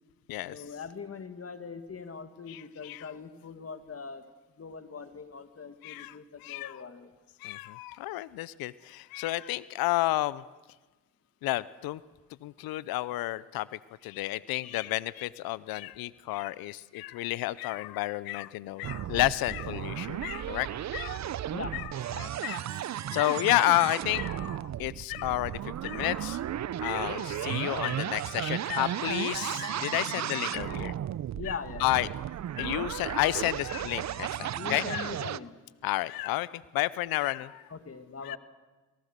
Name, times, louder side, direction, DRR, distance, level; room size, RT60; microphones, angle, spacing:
voice 1, 0.5-4.3 4.6-7.1 21.5-21.8 31.3-31.8 34.5-35.5 37.7-38.4, left 5 dB, 40° left, 9 dB, 2.2 m, -41 dB
voice 2, 2.5-3.0 5.8-6.2 6.4-6.8 7.4-10.4 11.4-12.0 12.4-13.7 14.0-20.7 20.9-21.3 21.7-21.9 22.2-22.6 23.1-26.4 26.8-30.9 31.4-31.5 31.8-32.1 32.6-35.1 35.8-37.6 38.2-38.4, left 17 dB, 85° left, 19 dB, 0.6 m, -31 dB
sound 1, 18.8-35.4, right 11 dB, 50° right, 0.7 m, -34 dB
27.5 x 18.5 x 6.7 m, 1.2 s
supercardioid pair, 60°, 35 cm